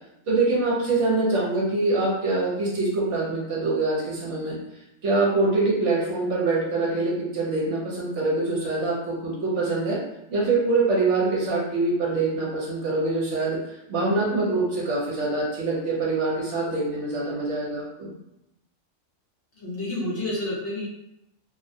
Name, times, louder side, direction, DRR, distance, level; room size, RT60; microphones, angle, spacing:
voice 1, 0.3-4.6 5.0-10.0 10.3-13.6 13.9-18.1, right 3 dB, 65° right, -4 dB, 1.0 m, -24 dB
voice 2, 19.6-20.9, left 1 dB, 55° left, -6 dB, 0.8 m, -29 dB
2.4 x 2.1 x 2.6 m, 0.85 s
omnidirectional pair, 1.4 m